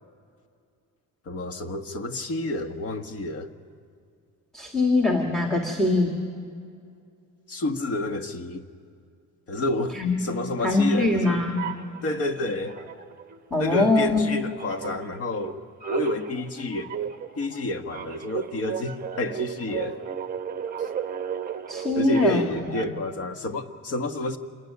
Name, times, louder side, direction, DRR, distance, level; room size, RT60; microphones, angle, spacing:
voice 1, 1.3-3.5 7.5-8.6 9.5-11.4 12.0-12.8 13.6-15.6 15.9-16.9 17.4-20.0 22.0-24.4, left 2 dB, 45° left, 7 dB, 1.6 m, -29 dB
voice 2, 4.5-6.2 9.9-10.2 10.6-11.6 13.5-14.3 21.7-22.5, left 2 dB, ahead, 2 dB, 2.1 m, -22 dB
sound 1, 11.6-13.4 13.7-23.2, right 8 dB, 25° right, 1.0 m, -35 dB
27.0 x 20.5 x 9.7 m, 2.3 s
cardioid pair, 165°, 32 cm